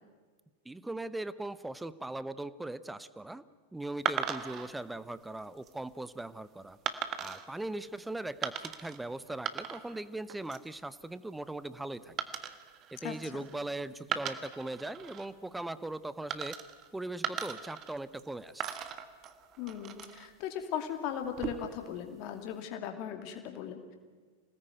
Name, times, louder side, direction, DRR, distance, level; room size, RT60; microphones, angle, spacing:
voice 1, 0.6-3.4 3.7-6.8 7.2-12.2 12.9-16.6 16.9-18.6, right 2 dB, 5° right, 16 dB, 1.0 m, -39 dB
sound 1, 4.1-4.7 5.4-5.7 6.9-7.5 8.4-9.0 9.3-10.0 10.3-10.7 12.2-13.6 14.0-15.3 16.3-16.9 17.2-18.3 18.6-20.3 21.2-21.8, right 9 dB, 30° right, 1.7 m, -38 dB
voice 2, 13.0-13.4 19.6-23.9, left 9 dB, 40° left, 6 dB, 2.5 m, -38 dB
27.0 x 18.5 x 9.3 m, 1.5 s
figure-of-eight pair, 90°, 0 cm